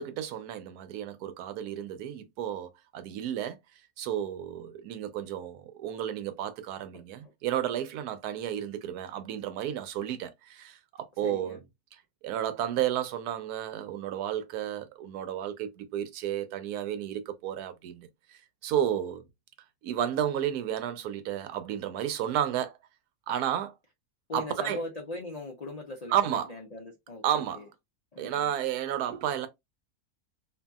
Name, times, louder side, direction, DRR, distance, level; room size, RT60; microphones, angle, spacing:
voice 1, 0.0-3.6 4.0-11.6 12.2-19.3 19.8-22.8 23.3-23.7 24.3-24.8 26.1-26.5 27.2-27.6 28.2-29.5, right 10 dB, 90° right, 1.1 m, -32 dB
voice 2, 6.9-7.3 11.2-11.6 24.3-27.7 28.1-28.5, left 2 dB, 70° left, 0.3 m, -40 dB
2.7 x 2.7 x 2.3 m
omnidirectional pair, 1.6 m